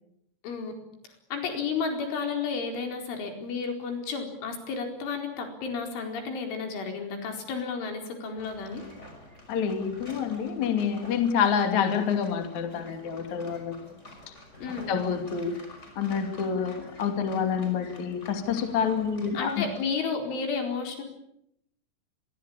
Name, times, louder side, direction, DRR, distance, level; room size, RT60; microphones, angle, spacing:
voice 1, 1.3-8.8 14.6-14.9 19.3-21.0, left 5 dB, 70° left, 4 dB, 6.9 m, -32 dB
sound 1, 8.4-19.8, left 1 dB, 15° left, 5.5 m, -49 dB
voice 2, 9.5-13.7 14.9-15.6 16.0-19.6, left 7 dB, 45° left, 5 dB, 3.3 m, -27 dB
27.5 x 22.5 x 8.8 m, 0.78 s
omnidirectional pair, 5.7 m